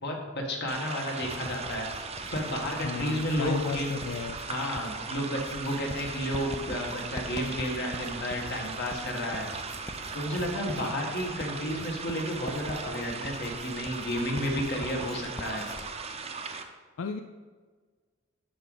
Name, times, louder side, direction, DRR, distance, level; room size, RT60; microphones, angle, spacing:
voice 1, 0.0-1.9 2.3-4.0 4.5-9.5 10.1-15.6, equal, 55° left, 0 dB, 1.6 m, -32 dB
sound 1, 0.7-16.6, right 4 dB, 30° right, 0.7 m, -38 dB
Writing, 1.2-15.9, left 1 dB, 15° left, 0.5 m, -44 dB
voice 2, 2.8-4.4 17.0-17.2, left 5 dB, 85° left, 6 dB, 0.4 m, -34 dB
12.0 x 5.0 x 4.0 m, 1.5 s
head